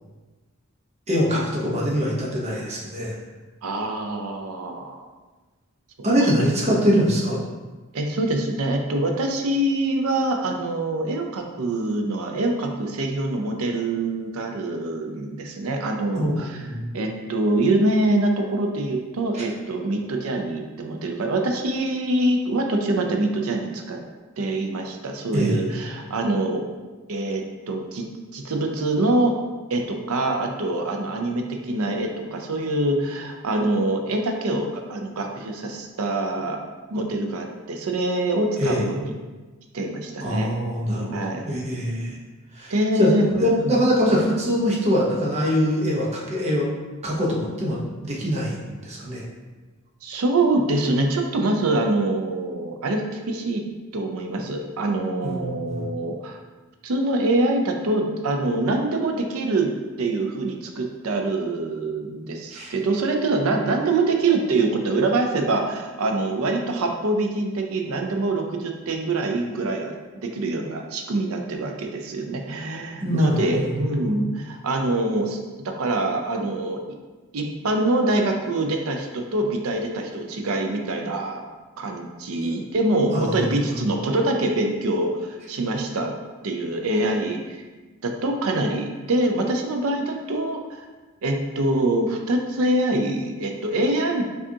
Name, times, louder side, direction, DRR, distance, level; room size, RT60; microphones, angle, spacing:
voice 1, 1.1-3.1 6.0-7.4 16.2-16.9 19.3-19.4 25.3-25.7 38.6-38.8 40.2-41.2 41.5-42.1 42.5-42.7 43.0-43.1 43.4-46.7 47.0-49.2 55.2-55.9 62.5-62.7 73.0-73.8 82.4-82.5 83.1-83.4 83.7-83.8, equal, 30° right, -4 dB, 0.7 m, -23 dB
voice 2, 3.6-5.1 7.9-16.6 16.9-24.0 24.4-26.6 27.1-28.1 28.3-29.3 29.7-36.6 36.9-39.1 39.7-40.5 41.1-41.4 42.7-43.8 50.0-53.6 53.9-56.4 56.8-59.7 60.0-70.0 70.2-75.4 75.6-76.8 77.3-81.4 81.8-86.1 86.4-87.6 88.0-90.9 91.2-94.3, right 2 dB, 75° right, 3 dB, 0.5 m, -24 dB
4.8 x 2.4 x 2.8 m, 1.3 s
head